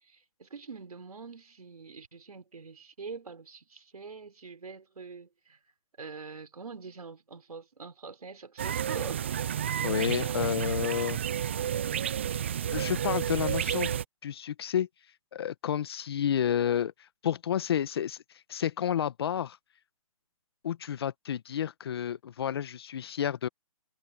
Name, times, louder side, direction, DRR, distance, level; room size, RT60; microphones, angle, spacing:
voice 1, 0.0-5.6 6.0-9.7 10.3-10.6, right 4 dB, 80° right, 3.8 m, -45 dB
sound 1, 8.6-14.0, right 9 dB, 20° right, 0.4 m, -31 dB
voice 2, 9.8-11.2 12.7-13.9 14.2-14.9 15.3-18.2 18.5-19.6 20.6-23.5, left 9 dB, 40° left, 1.3 m, -30 dB
hypercardioid pair, 160°, 19 cm